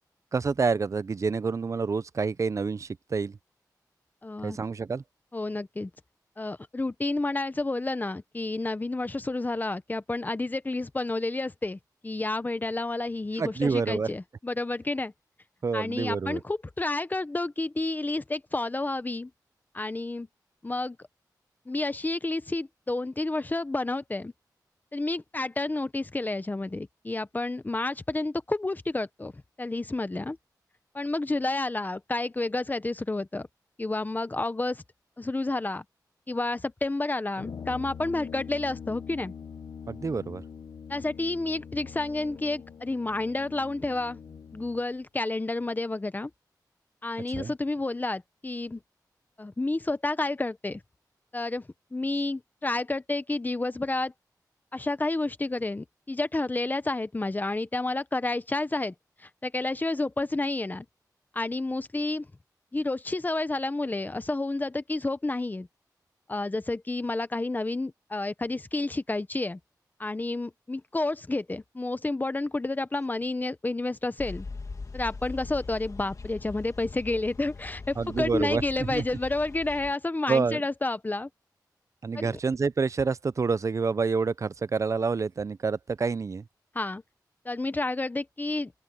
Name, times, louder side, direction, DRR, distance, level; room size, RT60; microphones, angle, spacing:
voice 1, 0.3-3.4 4.4-5.0 13.4-14.1 15.6-16.4 39.9-40.4 47.3-47.5 78.0-78.6 78.9-79.0 80.3-80.6 82.0-86.4, right 4 dB, 45° right, 0.5 m, -28 dB
voice 2, 4.2-4.6 5.3-5.9 6.4-15.1 15.7-19.3 19.7-20.3 20.6-21.0 21.7-24.3 24.9-29.3 29.6-30.4 30.9-33.5 33.8-34.8 35.2-35.8 36.3-39.3 40.9-44.2 44.5-46.3 47.0-48.8 49.4-50.8 51.3-51.7 51.9-54.1 54.7-58.9 59.2-60.9 61.3-62.3 62.7-65.7 66.3-69.6 70.0-74.4 74.9-81.3 82.1-82.4 86.7-87.0 87.4-88.7, left 2 dB, 25° left, 1.0 m, -30 dB
Brass instrument, 37.3-44.8, left 7 dB, 75° left, 1.0 m, -43 dB
sound 1, 74.2-79.9, left 4 dB, 50° left, 2.3 m, -41 dB
open air
wide cardioid pair, 90°, 7 cm